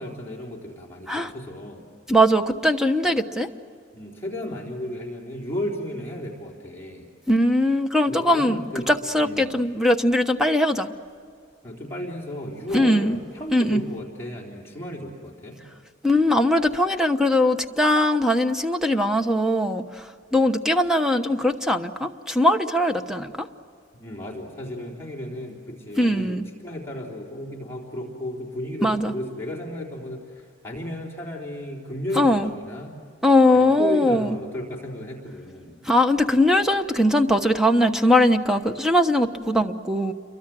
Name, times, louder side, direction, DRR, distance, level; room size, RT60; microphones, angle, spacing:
voice 1, 0.0-1.8 3.9-7.1 8.1-8.9 9.2-9.6 11.6-15.6 23.9-32.9 33.5-35.8, left 1 dB, 15° left, -3 dB, 3.6 m, -34 dB
voice 2, 2.1-3.5 7.3-10.9 12.7-13.2 13.5-13.8 16.0-19.8 20.3-23.5 26.0-26.4 28.8-29.1 32.1-32.5 33.2-34.4 35.8-40.1, left 1 dB, 5° right, 7 dB, 1.0 m, -20 dB
29.0 x 23.5 x 7.7 m, 2.3 s
head